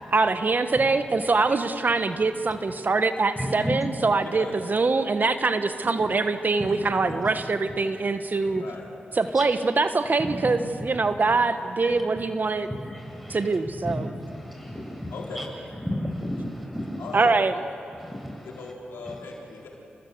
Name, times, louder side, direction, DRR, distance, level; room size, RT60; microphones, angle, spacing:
voice 1, 0.1-8.6 9.2-12.7 13.3-14.1 17.1-17.5, right 3 dB, 50° right, 9 dB, 1.2 m, -23 dB
voice 2, 3.4-3.7 6.6-6.7 7.3-7.4 8.4-8.6 9.3-9.5 10.2-10.5 11.0-11.4 11.8-12.0 12.8-13.5 13.8-15.5 15.8-17.1 17.9-18.5, equal, ahead, 2 dB, 7.0 m, -33 dB
voice 3, 8.5-8.8 15.1-15.4 17.0-17.6 18.4-19.7, left 4 dB, 85° left, -2 dB, 4.5 m, -38 dB
29.5 x 20.0 x 7.9 m, 2.6 s
supercardioid pair, 40°, 4 cm